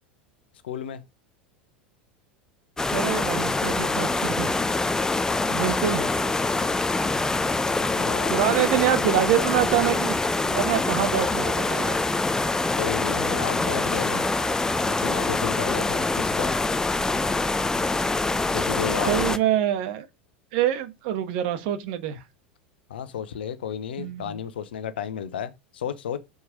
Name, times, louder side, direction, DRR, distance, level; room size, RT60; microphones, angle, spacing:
voice 1, 0.6-1.0 5.5-6.1 7.7-8.4 12.8-14.3 14.9-16.5 18.5-19.4 22.9-26.2, left 8 dB, 70° left, 1.0 m, -33 dB
sound 1, 2.8-19.4, left 3 dB, 10° left, 0.8 m, -25 dB
voice 2, 2.9-4.5 5.5-6.0 8.3-10.2 10.4-12.0 19.1-20.1 20.5-22.2 24.0-24.4, right 11 dB, 60° right, 1.4 m, -25 dB
sound 2, 6.1-15.4, right 2 dB, 5° right, 1.3 m, -43 dB
7.0 x 4.8 x 5.0 m
figure-of-eight pair, 85°, 6 cm